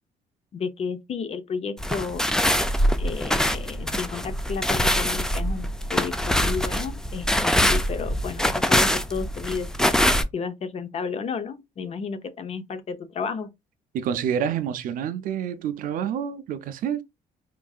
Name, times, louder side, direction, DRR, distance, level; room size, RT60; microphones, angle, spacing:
voice 1, 0.5-2.5 3.0-10.0 10.3-13.5, left 5 dB, 45° left, 0.6 m, -32 dB
sound 1, 1.8-10.2, equal, 5° left, 0.4 m, -23 dB
voice 2, 13.9-17.0, right 8 dB, 70° right, 0.6 m, -28 dB
4.5 x 2.6 x 2.3 m
cardioid pair, 115°, 15 cm